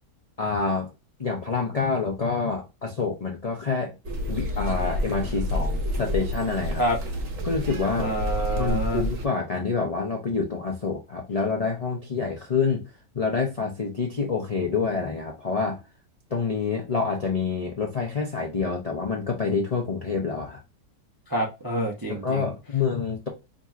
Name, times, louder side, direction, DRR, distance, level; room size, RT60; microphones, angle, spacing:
voice 1, 0.4-0.9 1.2-3.9 4.3-6.8 7.4-8.1 8.6-12.8 13.1-15.8 16.3-20.6 22.1-23.3, left 4 dB, 50° left, 0.4 m, -27 dB
sound 1, 4.0-9.2, equal, 55° right, 1.3 m, -29 dB
voice 2, 8.0-9.0 21.3-22.5, right 1 dB, 25° right, 0.5 m, -27 dB
5.2 x 2.8 x 2.4 m
omnidirectional pair, 1.7 m